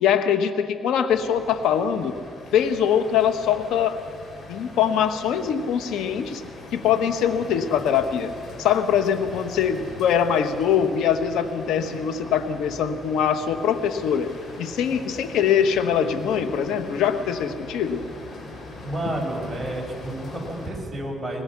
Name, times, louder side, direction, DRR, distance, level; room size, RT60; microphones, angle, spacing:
voice 1, 0.0-2.2 2.5-4.0 4.5-6.4 6.7-8.3 8.6-14.3 14.6-18.0, left 8 dB, 85° left, 9 dB, 1.4 m, -23 dB
sound 1, 1.1-20.7, left 2 dB, 60° left, 6.6 m, -41 dB
voice 2, 18.8-21.4, right 1 dB, 15° right, -1 dB, 5.8 m, -30 dB
22.5 x 20.0 x 6.1 m, 2.3 s
cardioid pair, 90°, 0 cm